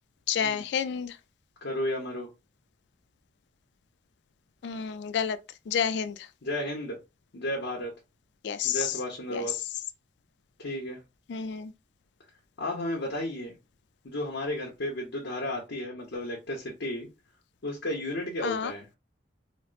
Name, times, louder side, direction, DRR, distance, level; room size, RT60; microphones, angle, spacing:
voice 1, 0.3-1.2 4.6-5.4 5.7-6.3 8.4-8.9 9.3-9.6 11.3-11.7 18.4-18.7, left 7 dB, 65° left, 0.3 m, -30 dB
voice 2, 1.6-2.3 6.4-7.0 7.3-7.9 8.6-9.6 10.6-11.0 12.6-13.5 14.0-17.1 17.6-18.8, left 1 dB, 85° left, 0.9 m, -33 dB
4.2 x 2.1 x 2.4 m
head